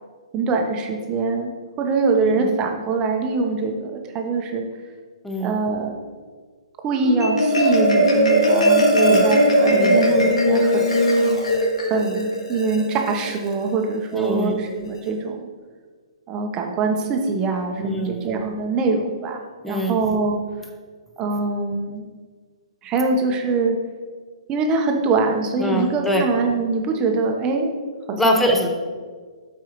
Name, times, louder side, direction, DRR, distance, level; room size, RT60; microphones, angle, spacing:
voice 1, 0.3-1.5 1.8-4.6 5.4-5.9 6.8-10.9 11.9-15.5 16.3-20.4 21.2-22.1 22.8-23.7 24.5-27.7 28.1-28.5, right 4 dB, 25° right, 3 dB, 1.0 m, -23 dB
voice 2, 2.2-2.5 5.2-5.6 8.9-9.3 9.7-10.1 14.1-14.6 17.8-18.2 19.6-20.0 25.6-26.3 28.2-28.7, equal, 5° left, 2 dB, 0.9 m, -23 dB
Marimba xylophone, 6.9-13.5, equal, 85° left, 1.8 m, -19 dB
12.5 x 4.7 x 3.1 m, 1.5 s
hypercardioid pair, 140°, 3 cm